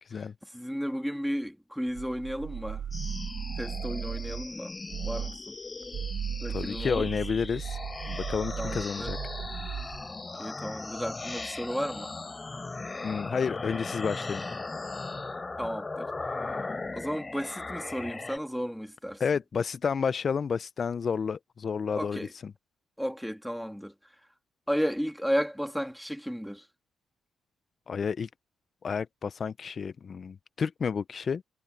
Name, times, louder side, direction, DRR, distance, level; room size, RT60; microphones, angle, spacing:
voice 1, 0.0-0.3 6.5-7.8 8.1-9.2 13.0-14.4 19.2-22.5 27.9-28.3 28.8-31.4, left 6 dB, 45° left, 0.4 m, -31 dB
voice 2, 0.5-2.8 3.6-4.7 5.0-5.6 6.4-7.1 8.6-9.1 10.4-12.1 15.6-16.1 16.9-19.2 21.9-22.3 23.0-23.9 24.7-26.6, equal, ahead, 2.1 m, -33 dB
sound 1, 2.0-4.5 4.9-5.4 5.8-10.1, right 8 dB, 65° right, 2.4 m, -36 dB
sound 2, 2.9-18.4, left 3 dB, 25° left, 6.3 m, -38 dB
cardioid pair, 90°, 0 cm